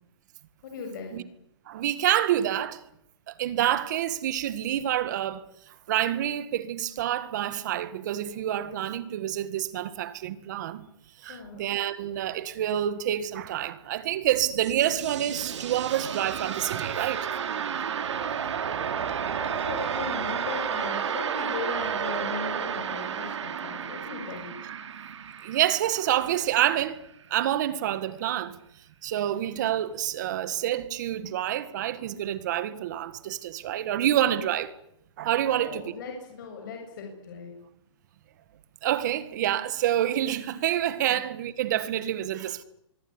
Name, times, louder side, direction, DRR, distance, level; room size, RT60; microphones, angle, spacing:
voice 1, 0.6-1.2 11.3-11.7 18.2-24.8 30.4-30.5 33.5-33.6 35.5-37.5 41.1-41.2, left 5 dB, 40° left, 7.1 m, -39 dB
voice 2, 1.7-2.8 3.3-5.4 5.9-10.9 11.2-17.3 24.7-24.8 25.4-27.0 27.3-28.6 29.0-34.7 35.2-35.9 38.8-42.6, right 12 dB, 35° right, 1.9 m, -27 dB
sound 1, 14.1-26.9, right 8 dB, 70° right, 3.1 m, -32 dB
25.5 x 23.0 x 9.9 m
hypercardioid pair, 170°, 16 cm